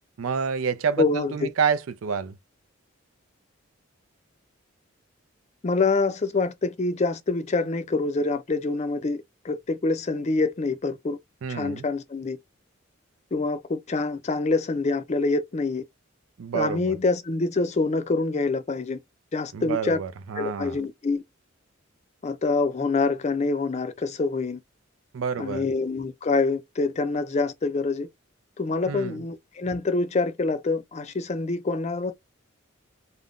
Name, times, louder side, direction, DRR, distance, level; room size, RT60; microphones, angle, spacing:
voice 1, 0.2-2.3 11.4-11.9 16.4-16.9 19.5-20.8 25.1-25.7 28.9-29.2, right 6 dB, 80° right, 0.4 m, -28 dB
voice 2, 1.0-1.5 5.6-11.2 11.5-12.4 13.3-15.8 16.5-19.0 19.3-20.0 20.3-21.2 22.2-24.6 25.4-28.1 28.6-32.1, left 3 dB, 35° left, 0.4 m, -26 dB
2.5 x 2.1 x 3.4 m
head